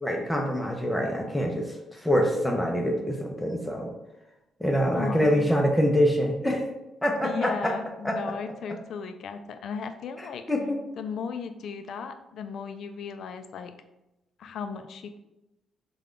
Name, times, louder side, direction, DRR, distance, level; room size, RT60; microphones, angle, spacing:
voice 1, 0.0-3.9 4.6-6.6 7.0-7.7 8.0-8.2 10.2-10.8, equal, 5° left, 1 dB, 0.5 m, -25 dB
voice 2, 4.9-5.4 7.2-10.4 11.0-13.7 14.4-15.2, left 6 dB, 65° left, 8 dB, 0.3 m, -36 dB
3.7 x 2.3 x 3.6 m, 0.93 s
cardioid pair, 90°, 0 cm